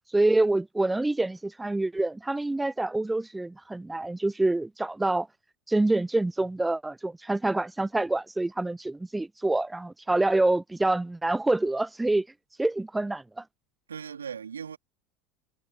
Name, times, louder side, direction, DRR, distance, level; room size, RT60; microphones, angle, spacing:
voice 1, 0.1-5.3 5.7-12.3 12.6-13.4, right 2 dB, 10° right, 0.8 m, -26 dB
voice 2, 13.9-14.8, right 7 dB, 85° right, 3.6 m, -38 dB
hypercardioid pair, 75°, 0 cm